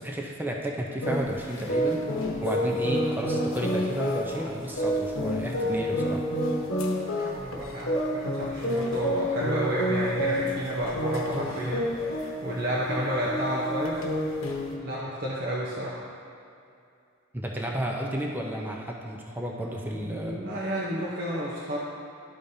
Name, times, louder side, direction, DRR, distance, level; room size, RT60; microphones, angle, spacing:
voice 1, 0.0-2.0 2.4-6.2 17.3-20.4, right 1 dB, 10° right, -1 dB, 0.6 m, -32 dB
sound 1, 1.0-14.7, equal, 70° left, 1.0 m, -29 dB
voice 2, 7.0-14.0 14.8-16.0 19.9-21.8, equal, 45° right, -6 dB, 0.8 m, -31 dB
12.5 x 5.1 x 2.7 m, 2.5 s
head